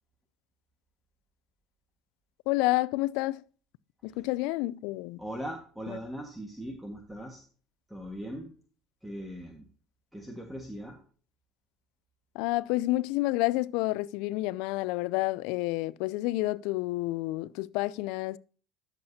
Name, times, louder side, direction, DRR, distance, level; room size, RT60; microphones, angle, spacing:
voice 1, 2.5-3.4 4.0-5.2 5.9-6.0 12.3-18.4, left 19 dB, 75° left, 0.4 m, -29 dB
voice 2, 5.2-7.4 7.9-8.5 9.0-9.7 10.1-11.0, equal, 5° right, 1.6 m, -40 dB
12.0 x 7.2 x 2.8 m
supercardioid pair, 90°, 0 cm